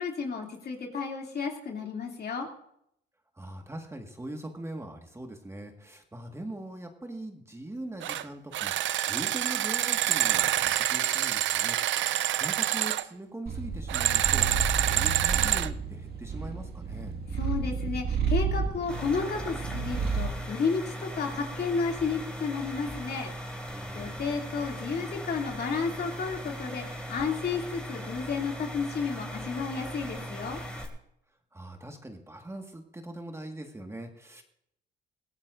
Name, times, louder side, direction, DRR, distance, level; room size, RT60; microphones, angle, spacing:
voice 1, 0.0-2.5 17.3-23.3 23.9-30.6, left 5 dB, 55° left, 1 dB, 2.8 m, -32 dB
voice 2, 3.4-8.7 9.1-17.2 23.7-24.2 31.5-34.4, right 1 dB, 15° right, 3 dB, 1.7 m, -41 dB
sound 1, 8.0-8.2 8.5-13.0 13.9-15.7, right 13 dB, 70° right, 0.5 m, -27 dB
Purr, 13.5-20.4, right 5 dB, 50° right, 2.0 m, -31 dB
sound 2, 18.9-30.8, equal, 5° left, 3.4 m, -39 dB
21.5 x 16.0 x 2.6 m, 0.75 s
cardioid pair, 90°, 20 cm